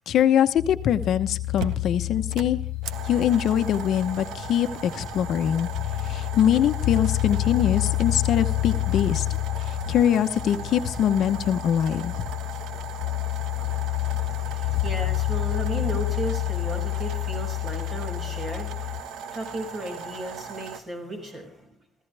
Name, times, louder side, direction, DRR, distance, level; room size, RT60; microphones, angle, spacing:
voice 1, 0.1-2.6 3.0-5.7 6.0-9.3 9.6-12.1 14.7-14.8, left 9 dB, 60° left, 9 dB, 1.0 m, -23 dB
sound 1, 0.6-19.0, left 17 dB, 90° left, 0.8 m, -29 dB
sound 2, 1.0-1.1 1.6-20.8, right 6 dB, 85° right, 1.5 m, -39 dB
voice 2, 13.5-21.8, right 1 dB, 30° right, 6 dB, 6.1 m, -35 dB
26.5 x 15.5 x 3.4 m, 0.40 s
cardioid pair, 160°, 0 cm